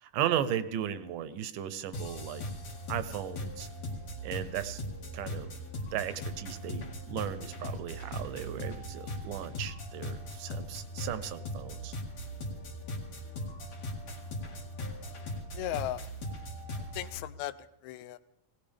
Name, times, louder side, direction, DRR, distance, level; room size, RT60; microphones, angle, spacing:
voice 1, 0.0-2.4 2.9-3.7 4.2-4.8 5.1-5.5 5.9-11.9, right 10 dB, 75° right, 12 dB, 2.2 m, -36 dB
sound 1, 1.9-17.2, equal, 55° left, 3.1 m, -39 dB
voice 2, 15.5-16.1 16.7-17.5 17.8-18.2, left 14 dB, 80° left, 12 dB, 1.7 m, -37 dB
21.0 x 18.0 x 3.5 m, 0.82 s
omnidirectional pair, 4.0 m